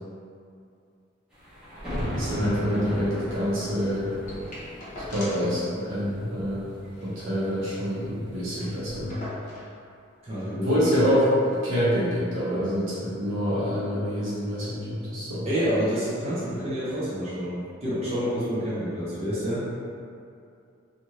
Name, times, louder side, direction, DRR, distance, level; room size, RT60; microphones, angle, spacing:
sound 1, 1.3-9.1, equal, 5° right, 0.8 m, -37 dB
voice 1, 2.1-4.1 5.1-6.7 7.0-9.2 10.5-15.5, equal, 85° right, -9 dB, 1.0 m, -26 dB
sound 2, 4.3-5.6 5.9-6.0 6.2-6.4 6.8-7.9 8.2-8.3 8.5-9.7 10.6-10.7, left 1 dB, 40° left, 0.8 m, -41 dB
voice 2, 10.2-10.7 15.4-19.6, equal, 35° right, -10 dB, 0.7 m, -28 dB
2.6 x 2.5 x 3.0 m, 2.4 s
head